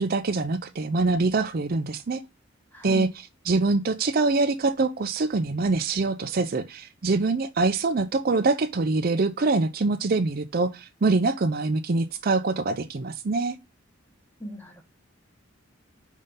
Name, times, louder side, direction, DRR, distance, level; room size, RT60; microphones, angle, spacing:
voice 1, 0.0-2.2 2.8-3.1 3.5-13.6, right 3 dB, 45° right, 0.5 m, -24 dB
voice 2, 2.7-3.1 14.4-14.8, equal, 10° left, 1.3 m, -36 dB
5.3 x 3.7 x 5.4 m
head